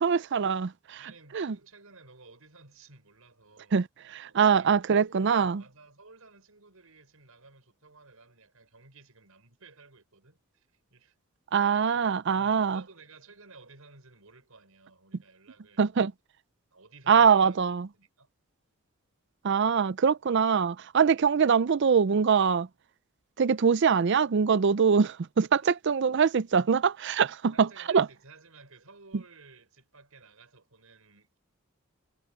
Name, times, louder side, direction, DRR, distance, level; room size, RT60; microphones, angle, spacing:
voice 1, 0.0-1.0 1.3-1.5 3.7-3.9 4.1-5.6 11.5-12.8 15.8-16.1 17.1-17.9 19.4-22.7 23.4-28.1, right 6 dB, 55° right, 0.5 m, -23 dB
voice 2, 1.0-11.2 11.6-16.0 16.7-18.3 25.6-25.7 27.5-31.4, right 3 dB, 85° right, 5.9 m, -55 dB
head